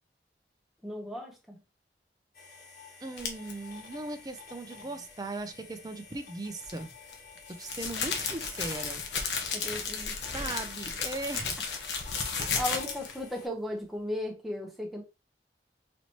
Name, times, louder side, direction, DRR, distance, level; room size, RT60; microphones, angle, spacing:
voice 1, 0.8-1.6 9.5-10.7 12.5-15.0, left 1 dB, ahead, 0.8 m, -36 dB
sound 1, 2.3-13.5, left 5 dB, 55° left, 1.6 m, -51 dB
voice 2, 3.0-6.9 7.5-9.0 10.3-11.6 12.4-13.0, right 2 dB, 20° right, 0.5 m, -39 dB
sound 2, 3.2-3.5 6.6-13.2, left 5 dB, 85° left, 0.9 m, -33 dB
4.2 x 3.0 x 2.8 m
head